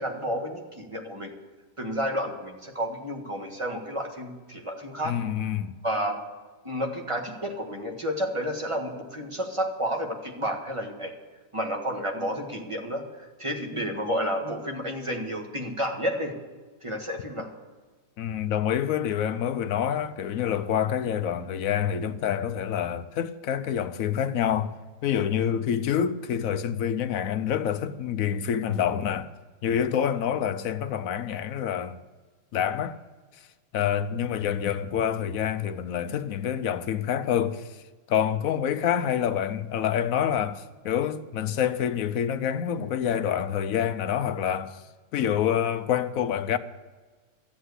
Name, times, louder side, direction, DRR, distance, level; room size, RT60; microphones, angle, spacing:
voice 1, 0.0-1.3 1.8-5.2 5.8-6.2 6.6-11.1 11.5-16.4 16.8-17.5, equal, 20° right, 1.6 m, -31 dB
voice 2, 5.0-5.7 18.2-24.7 25.0-29.3 29.6-32.0 32.5-33.0 33.7-37.7 38.1-44.8 45.1-46.6, left 9 dB, 65° left, 0.9 m, -27 dB
14.0 x 7.9 x 8.1 m
omnidirectional pair, 1.8 m